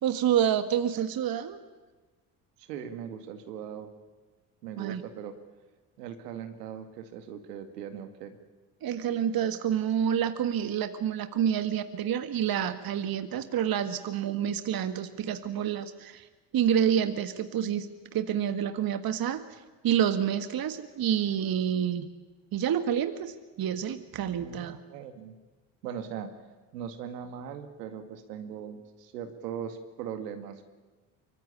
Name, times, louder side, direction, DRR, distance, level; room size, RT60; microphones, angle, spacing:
voice 1, 0.0-1.6 4.8-5.0 8.8-16.3 16.5-22.1 22.5-24.8, right 9 dB, 45° right, 10 dB, 1.7 m, -28 dB
voice 2, 2.6-3.9 4.6-5.3 6.0-8.4 24.4-25.4 25.8-26.3 26.7-30.7, right 8 dB, 80° right, 7 dB, 2.3 m, -40 dB
25.5 x 24.0 x 8.6 m, 1.3 s
hypercardioid pair, 55°, 48 cm